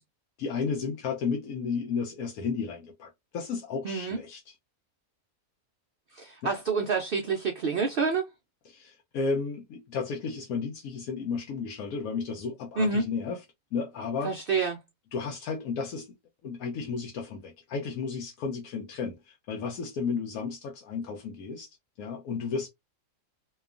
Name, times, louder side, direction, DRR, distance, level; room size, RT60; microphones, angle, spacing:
voice 1, 0.4-4.5 6.4-6.5 8.7-13.4 13.7-14.3 15.1-16.1 16.4-21.7 22.0-22.7, left 5 dB, 80° left, 1.0 m, -33 dB
voice 2, 3.8-4.2 6.1-8.3 12.8-13.0 14.2-14.8, right 4 dB, 85° right, 0.4 m, -28 dB
2.8 x 2.3 x 2.3 m
omnidirectional pair, 1.5 m